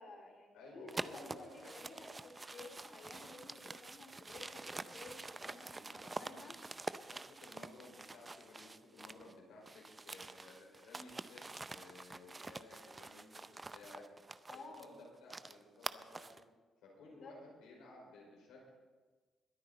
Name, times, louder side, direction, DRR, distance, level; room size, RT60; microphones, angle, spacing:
voice 1, 0.0-6.6 14.5-15.0 17.0-17.3, left 3 dB, 55° left, 1 dB, 3.0 m, -54 dB
voice 2, 0.5-1.7 5.5-6.4 7.1-13.5 13.7-14.0 14.5-14.9 15.2-16.2 16.8-18.7, left 2 dB, 90° left, -2 dB, 5.2 m, -56 dB
sound 1, 0.9-9.3 9.6-16.4, right 3 dB, 20° right, 0.5 m, -47 dB
21.5 x 9.9 x 4.2 m, 1.4 s
cardioid pair, 90°, 0 cm